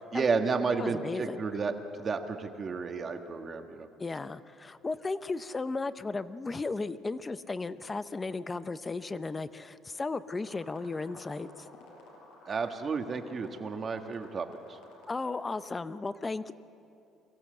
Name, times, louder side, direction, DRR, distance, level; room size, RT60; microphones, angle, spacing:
voice 1, 0.1-1.7 2.0-3.9 12.5-14.8, right 4 dB, 30° right, 6 dB, 1.4 m, -32 dB
voice 2, 0.8-1.4 4.0-11.7 15.1-16.5, left 3 dB, 20° left, 14 dB, 0.6 m, -35 dB
sound 1, 10.4-15.6, left 2 dB, 90° left, 5.6 m, -54 dB
23.5 x 15.5 x 7.7 m, 2.7 s
cardioid pair, 130°, 0 cm